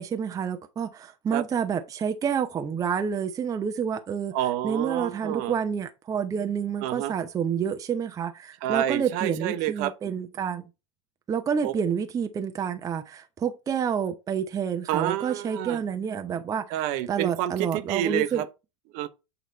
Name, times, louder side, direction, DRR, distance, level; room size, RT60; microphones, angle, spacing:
voice 1, 0.0-4.3 4.6-10.6 11.3-16.6 17.1-18.4, right 7 dB, 20° right, 0.7 m, -29 dB
voice 2, 4.3-5.6 6.8-7.1 8.6-9.9 11.6-11.7 14.9-15.8 16.7-18.5 18.9-19.1, right 12 dB, 50° right, 0.9 m, -28 dB
8.1 x 3.0 x 5.2 m
hypercardioid pair, 100°, 16 cm